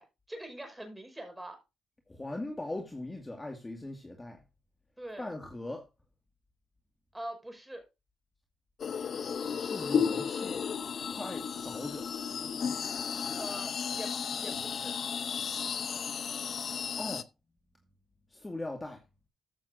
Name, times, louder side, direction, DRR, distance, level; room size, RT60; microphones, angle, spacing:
voice 1, 0.0-1.6 5.0-5.3 7.1-7.8 11.3-11.4 13.3-14.1 14.4-14.9, right 1 dB, 10° right, 5.7 m, -43 dB
voice 2, 2.1-4.4 5.2-5.9 9.5-10.6 11.1-12.1 17.0-17.3 18.3-19.0, left 2 dB, 20° left, 2.2 m, -40 dB
sound 1, 8.8-17.2, left 7 dB, 55° left, 0.8 m, -34 dB
14.5 x 7.2 x 2.7 m
cardioid pair, 85°, 0 cm